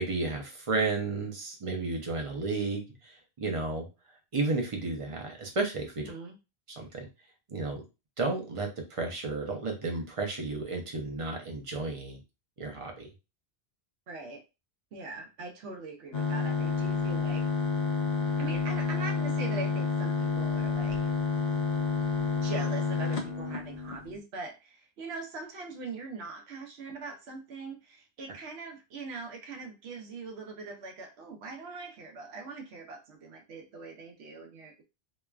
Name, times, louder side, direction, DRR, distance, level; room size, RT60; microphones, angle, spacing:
voice 1, 0.0-3.9 4.3-6.1 6.7-7.1 7.5-7.8 8.2-12.2 12.6-13.1, right 3 dB, 40° right, 2 dB, 0.6 m, -32 dB
voice 2, 6.0-6.4 14.1-14.4 14.9-17.4 18.4-21.0 22.4-34.8, right 3 dB, 90° right, 3 dB, 0.9 m, -42 dB
sound 1, 16.1-24.2, left 4 dB, 55° left, 0.6 m, -29 dB
3.0 x 2.2 x 2.3 m, 0.27 s
omnidirectional pair, 1.1 m